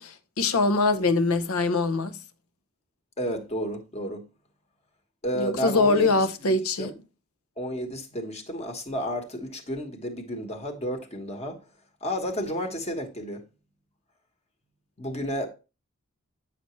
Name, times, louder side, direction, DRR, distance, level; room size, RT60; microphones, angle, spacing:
voice 1, 0.0-2.2 5.3-6.9, left 3 dB, 90° left, 0.8 m, -23 dB
voice 2, 3.2-4.2 5.2-6.1 6.4-7.0 7.6-11.6 12.0-13.4 15.0-15.5, equal, 30° left, 1.2 m, -32 dB
8.9 x 5.8 x 3.1 m
head